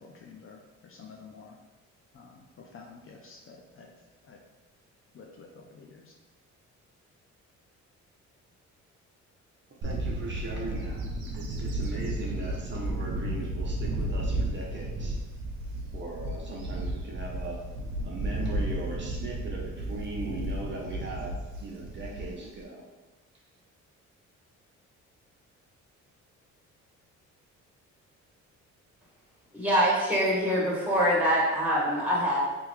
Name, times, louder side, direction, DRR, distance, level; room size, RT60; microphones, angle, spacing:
voice 1, 0.0-1.6 2.1-3.9 4.3-4.4 5.1-6.1, left 4 dB, 45° left, 0 dB, 0.5 m, -50 dB
voice 2, 9.8-11.1 11.3-15.1 15.9-17.6 18.0-22.8, right 2 dB, 40° right, -3 dB, 0.8 m, -39 dB
Bird / Wind, 9.8-22.6, right 1 dB, 70° right, 0.8 m, -33 dB
voice 3, 29.5-32.4, equal, 5° right, -6 dB, 1.5 m, -24 dB
3.4 x 2.9 x 3.2 m, 1.1 s
cardioid pair, 90°, 30 cm